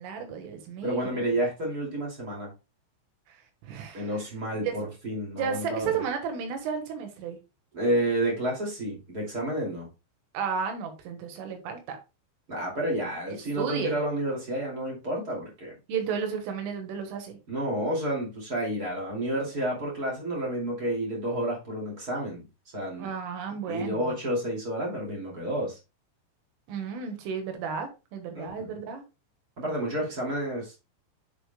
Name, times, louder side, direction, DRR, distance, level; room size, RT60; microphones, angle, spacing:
voice 1, 0.0-1.3 3.3-4.3 4.6-4.8 5.4-7.4 10.3-12.0 13.3-14.0 15.9-17.4 23.0-24.1 26.7-29.1, right 6 dB, 90° right, 5 dB, 3.9 m, -33 dB
voice 2, 0.8-2.5 3.9-6.0 7.7-9.9 12.5-15.7 17.5-22.4 22.7-23.1 23.7-25.8 28.3-28.8 29.6-30.8, right 1 dB, 30° right, -2 dB, 1.7 m, -30 dB
9.9 x 5.0 x 2.2 m, 0.28 s
omnidirectional pair, 5.6 m